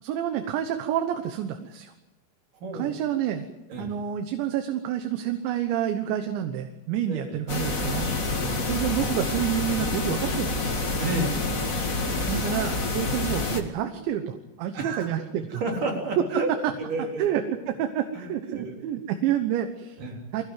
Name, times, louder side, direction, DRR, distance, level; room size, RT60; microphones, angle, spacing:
voice 1, 0.0-1.9 2.7-3.5 3.8-10.8 12.3-15.6 16.2-16.3 17.2-20.0 20.3-20.4, right 10 dB, 80° right, 6 dB, 3.5 m, -29 dB
voice 2, 2.6-2.9 3.7-3.9 7.1-7.4 8.4-8.7 11.0-11.7 14.7-15.1 15.5-16.5 16.8-17.3 18.1-18.8 20.0-20.2, right 2 dB, 50° right, 0 dB, 5.2 m, -31 dB
sound 1, 7.5-13.6, left 3 dB, 65° left, 0.8 m, -27 dB
24.0 x 17.0 x 9.4 m, 1.0 s
omnidirectional pair, 5.2 m